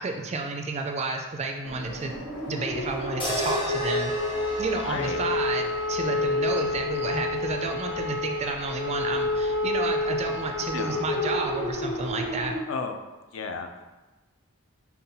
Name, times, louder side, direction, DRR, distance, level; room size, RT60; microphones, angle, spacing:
voice 1, 0.0-2.1 2.5-4.1 4.6-12.6, right 3 dB, 30° right, 3 dB, 0.3 m, -31 dB
sound 1, 1.6-12.6, left 2 dB, 90° left, 0.9 m, -29 dB
sound 2, 3.2-7.5, equal, 25° left, 0.7 m, -36 dB
voice 2, 4.8-5.2 10.7-11.1 12.7-13.0 13.3-13.8, left 5 dB, 65° left, 6 dB, 0.4 m, -33 dB
5.6 x 2.2 x 3.9 m, 1.2 s
head